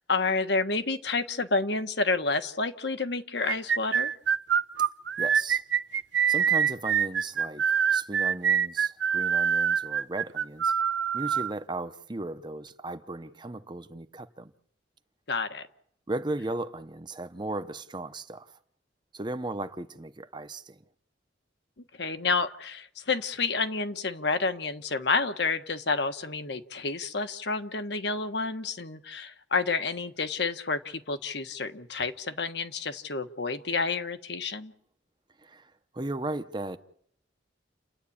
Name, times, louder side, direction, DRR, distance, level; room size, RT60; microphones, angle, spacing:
voice 1, 0.1-4.1 15.3-15.7 22.0-34.7, left 4 dB, 60° left, 1.3 m, -29 dB
sound 1, 3.5-11.5, right 7 dB, 75° right, 0.8 m, -25 dB
voice 2, 5.2-5.6 6.3-10.7 11.1-14.5 16.1-18.6 19.1-20.8 35.4-36.8, right 2 dB, 25° right, 0.8 m, -36 dB
29.5 x 11.0 x 8.7 m
head